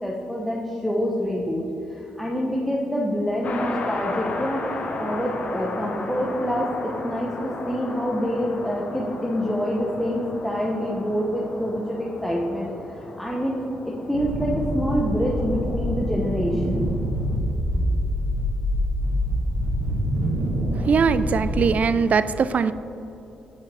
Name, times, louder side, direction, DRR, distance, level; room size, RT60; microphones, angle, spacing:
voice 1, 0.0-13.6 13.9-16.9, equal, ahead, -4 dB, 0.9 m, -26 dB
sound 1, 3.4-17.4, left 3 dB, 55° left, 0.9 m, -35 dB
sound 2, 14.1-21.8, equal, 75° right, 1.0 m, -25 dB
voice 2, 20.7-22.7, right 5 dB, 50° right, 14 dB, 0.3 m, -21 dB
8.3 x 5.6 x 3.4 m, 3.0 s
supercardioid pair, 55°, 3 cm